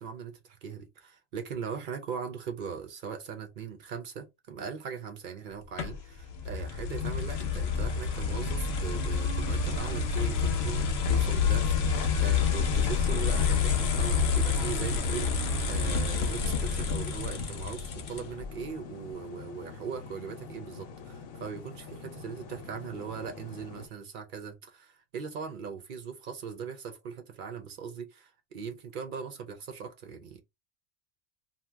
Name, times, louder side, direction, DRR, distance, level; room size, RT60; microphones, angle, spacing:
voice 1, 0.0-30.4, right 6 dB, 60° right, 0.5 m, -40 dB
sound 1, 5.8-18.5, left 5 dB, 60° left, 0.8 m, -28 dB
sound 2, 11.5-23.9, left 5 dB, 85° left, 1.0 m, -46 dB
2.7 x 2.1 x 3.3 m
omnidirectional pair, 1.4 m